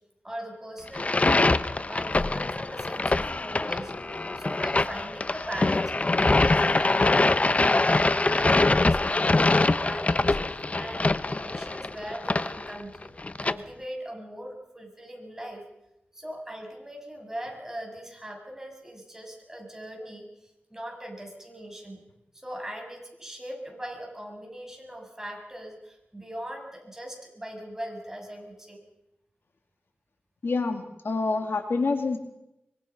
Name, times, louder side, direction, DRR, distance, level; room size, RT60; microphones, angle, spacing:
voice 1, 0.2-1.6 1.9-3.9 4.4-10.4 10.8-13.1 13.4-15.7 16.1-22.0 22.3-28.8, equal, 10° right, 1 dB, 6.7 m, -40 dB
sound 1, 0.9-13.5, left 2 dB, 35° left, 0.9 m, -24 dB
voice 2, 30.4-32.2, left 3 dB, 70° left, 6 dB, 2.3 m, -27 dB
24.5 x 23.0 x 5.9 m, 0.88 s
wide cardioid pair, 70°, 4 cm